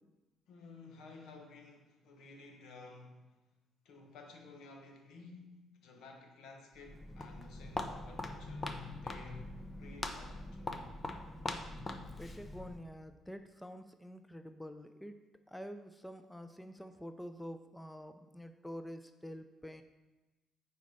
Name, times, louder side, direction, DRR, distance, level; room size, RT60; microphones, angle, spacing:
voice 1, 0.5-3.2 3.8-9.5 9.8-10.9, left 3 dB, 75° left, 1.2 m, -54 dB
Walk footsteps, 6.8-12.9, left 2 dB, 30° left, 0.9 m, -42 dB
voice 2, 12.2-19.8, equal, 10° left, 0.6 m, -47 dB
9.2 x 4.2 x 5.3 m
hypercardioid pair, 55°, 0 cm